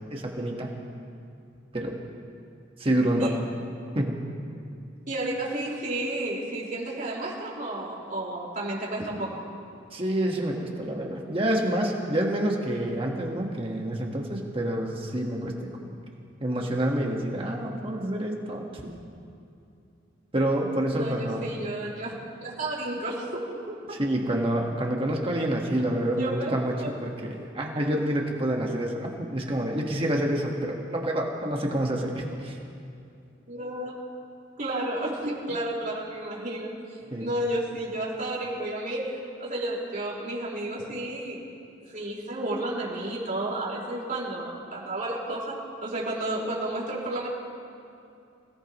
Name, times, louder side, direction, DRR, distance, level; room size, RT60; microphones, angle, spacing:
voice 1, 0.1-0.7 1.7-1.9 2.8-3.3 3.9-4.2 9.9-15.9 16.4-18.9 20.3-21.5 23.9-32.5 37.1-37.3, right 1 dB, 30° right, 0 dB, 1.4 m, -28 dB
voice 2, 5.1-9.4 20.9-22.1 22.4-23.7 26.2-26.9 31.8-32.1 33.5-33.9 34.6-41.4 41.9-47.3, right 1 dB, 45° right, -5 dB, 4.4 m, -32 dB
27.0 x 17.5 x 3.0 m, 2.5 s
head